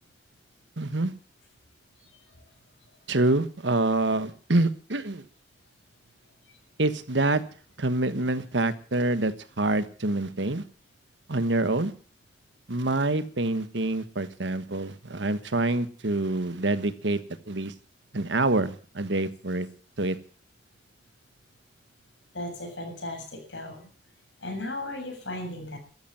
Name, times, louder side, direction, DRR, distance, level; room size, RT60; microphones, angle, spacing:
voice 1, 0.8-1.1 3.1-5.2 6.8-7.4 7.8-10.6 11.3-11.9 12.7-17.2 17.5-17.7 18.1-19.7 20.0-20.2, right 2 dB, 80° right, 1.4 m, -26 dB
voice 2, 22.3-23.9 24.4-25.8, left 1 dB, 90° left, 7.3 m, -36 dB
13.5 x 13.5 x 7.5 m
head